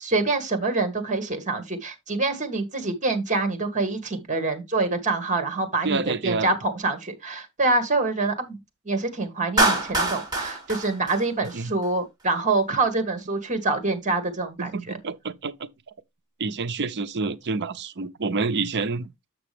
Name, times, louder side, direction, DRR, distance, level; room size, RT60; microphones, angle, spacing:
voice 1, 0.0-8.6 8.8-15.0, right 3 dB, 35° right, 1.7 m, -26 dB
voice 2, 5.8-6.5 11.5-11.7 14.6-15.7 16.4-19.1, right 4 dB, 55° right, 0.6 m, -28 dB
Clapping, 9.6-11.9, right 2 dB, 20° right, 2.7 m, -24 dB
7.6 x 6.0 x 3.3 m
head